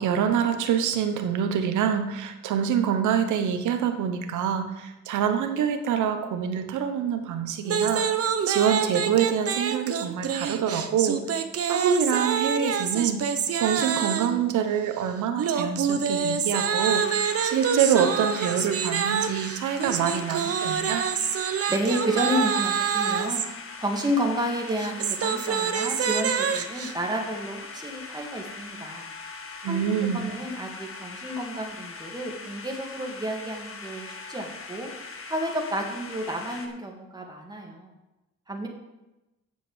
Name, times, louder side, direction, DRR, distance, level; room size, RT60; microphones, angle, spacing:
voice 1, 0.0-8.1 8.5-11.2 11.7-13.2 13.5-21.0 29.6-30.3, right 8 dB, 80° right, 7 dB, 1.1 m, -26 dB
sound 1, 7.6-14.4 15.4-23.5 24.7-26.9, right 7 dB, 50° right, 0.9 m, -27 dB
sound 2, 16.8-36.7, left 4 dB, 45° left, 1.5 m, -41 dB
voice 2, 21.7-23.4 23.8-29.1 29.7-29.8 30.1-34.9 35.3-37.9 38.5-38.7, equal, 15° right, 0 dB, 2.3 m, -31 dB
7.6 x 7.4 x 7.4 m, 1.0 s
cardioid pair, 90°, 30 cm